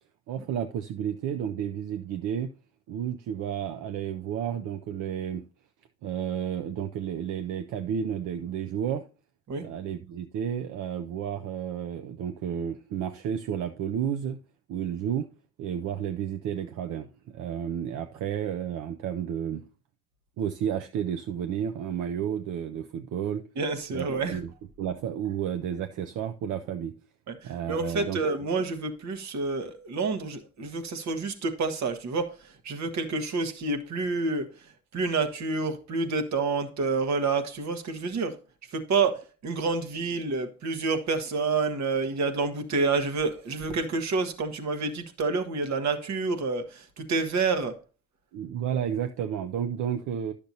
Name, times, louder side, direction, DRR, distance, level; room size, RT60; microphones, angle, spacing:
voice 1, 0.3-2.5 2.9-5.4 6.0-9.1 9.6-14.4 14.7-15.3 15.6-19.6 20.4-23.4 23.9-24.5 24.8-27.0 27.4-28.2 48.3-50.3, right 9 dB, 85° right, 0.6 m, -31 dB
voice 2, 23.6-24.4 27.3-34.5 34.9-38.4 38.7-47.8, right 4 dB, 65° right, 1.3 m, -28 dB
10.5 x 6.7 x 2.7 m
cardioid pair, 90°, 30 cm